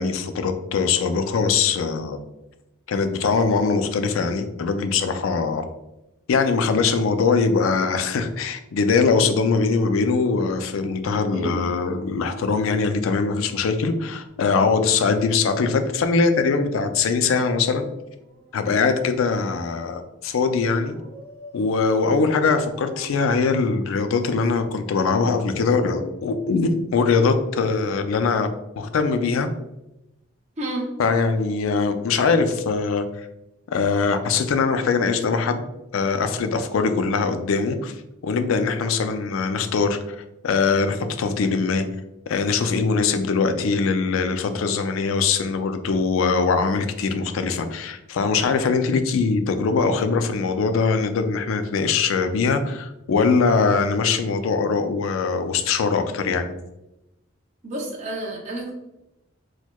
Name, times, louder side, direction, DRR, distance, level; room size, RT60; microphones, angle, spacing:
voice 1, 0.0-2.2 2.9-5.7 6.3-17.9 18.5-20.9 21.5-28.5 28.8-29.5 31.0-33.3 33.7-35.6 35.9-37.9 38.2-40.2 40.4-41.8 42.3-56.5, left 4 dB, 85° left, 9 dB, 0.4 m, -22 dB
Dog, 9.9-11.8 14.3-16.7 17.9-19.6 20.7-24.3 25.3-26.9 28.2-28.4, equal, 10° left, 0.9 m, -45 dB
voice 2, 30.6-30.9 57.6-58.7, right 1 dB, 35° right, -1 dB, 0.7 m, -30 dB
4.4 x 2.2 x 2.2 m, 0.93 s
head